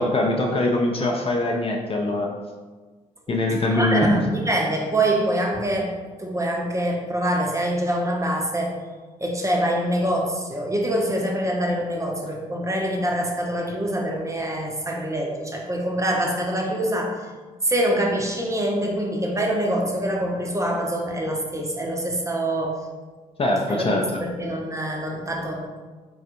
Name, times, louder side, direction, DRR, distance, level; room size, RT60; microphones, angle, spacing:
voice 1, 0.0-2.3 3.3-4.2 23.4-24.0, left 1 dB, 30° left, 0 dB, 0.5 m, -22 dB
voice 2, 3.7-5.9 6.2-8.8 9.2-17.2 17.6-22.8 23.7-23.9 24.2-25.7, right 1 dB, 15° right, 0 dB, 0.6 m, -25 dB
4.0 x 2.3 x 2.8 m, 1.4 s
hypercardioid pair, 40°, 18 cm